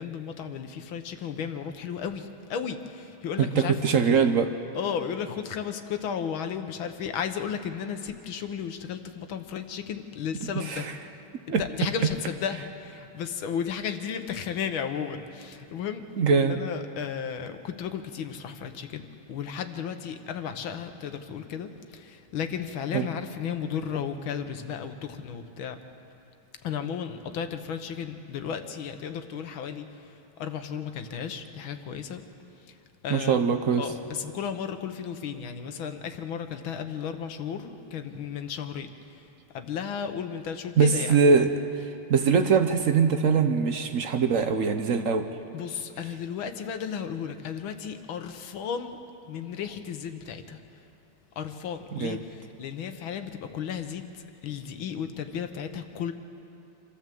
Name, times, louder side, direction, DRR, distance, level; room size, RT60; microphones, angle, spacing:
voice 1, 0.0-3.8 4.8-10.9 11.6-16.1 16.4-19.0 19.3-25.8 26.6-32.2 32.7-32.8 33.0-33.5 33.8-38.9 39.5-41.5 45.5-49.0 49.3-50.6 51.4-56.1, left 7 dB, 70° left, 7 dB, 1.7 m, -34 dB
voice 2, 3.4-4.5 10.4-10.9 11.5-11.6 16.2-16.6 22.9-23.1 33.1-33.8 40.8-41.5 41.8-45.3 51.9-52.2, right 5 dB, 60° right, 8 dB, 0.8 m, -22 dB
27.0 x 14.0 x 7.7 m, 2.8 s
omnidirectional pair, 2.4 m